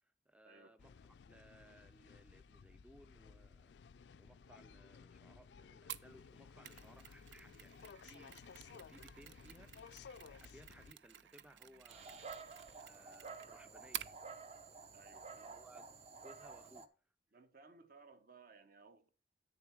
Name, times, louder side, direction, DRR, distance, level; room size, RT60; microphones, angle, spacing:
voice 1, 0.0-3.7 4.2-9.7 10.2-14.1 15.4-16.9, right 1 dB, 5° right, 0.4 m, -63 dB
sound 1, 0.8-10.9, left 6 dB, 75° left, 0.4 m, -57 dB
Mechanisms, 5.9-14.2, right 11 dB, 80° right, 0.5 m, -52 dB
Dog, 11.9-16.9, right 4 dB, 35° right, 0.7 m, -52 dB
voice 2, 14.9-15.5 16.6-16.7 17.3-19.1, right 4 dB, 55° right, 1.0 m, -61 dB
9.2 x 7.0 x 4.6 m
head